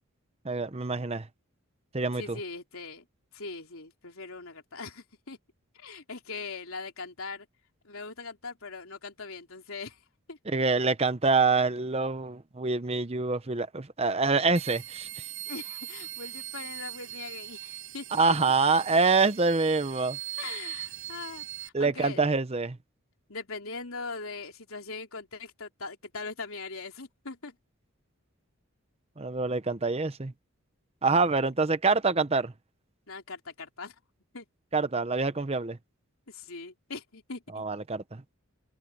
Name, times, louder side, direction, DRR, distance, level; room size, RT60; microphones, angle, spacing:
voice 1, 0.4-1.3 1.9-2.4 10.5-15.1 18.1-20.2 21.7-22.8 29.2-30.3 31.0-32.5 34.7-35.8 37.5-38.2, right 4 dB, 30° right, 0.7 m, -26 dB
voice 2, 2.1-3.1 3.3-5.4 5.7-7.5 7.8-10.4 15.4-18.1 20.4-22.2 23.3-27.6 33.1-34.0 34.3-34.5 36.3-37.6, left 4 dB, 75° left, 3.2 m, -41 dB
sound 1, 14.6-21.7, right 14 dB, 65° right, 6.8 m, -40 dB
head